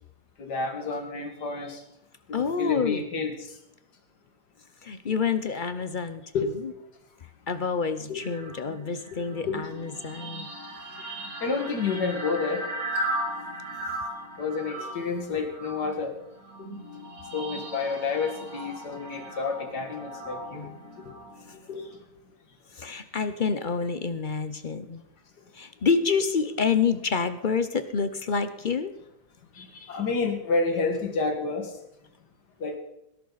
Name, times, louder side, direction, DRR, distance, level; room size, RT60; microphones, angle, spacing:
voice 1, 0.4-1.8 2.6-3.6 6.3-6.6 8.1-8.2 9.1-9.7 11.4-12.7 13.1-13.5 14.4-16.2 17.3-20.7 21.0-21.2 21.7-22.0 29.5-31.8 32.6-32.8, left 4 dB, 85° left, 5 dB, 2.5 m, -30 dB
voice 2, 2.3-3.0 4.8-6.7 7.5-10.5 20.5-20.8 21.5-21.6 22.7-25.0 25.5-28.9, left 5 dB, 50° left, 11 dB, 0.6 m, -28 dB
sound 1, 8.2-21.9, right 1 dB, 60° right, 2.9 m, -37 dB
18.5 x 11.5 x 4.0 m, 0.84 s
omnidirectional pair, 1.7 m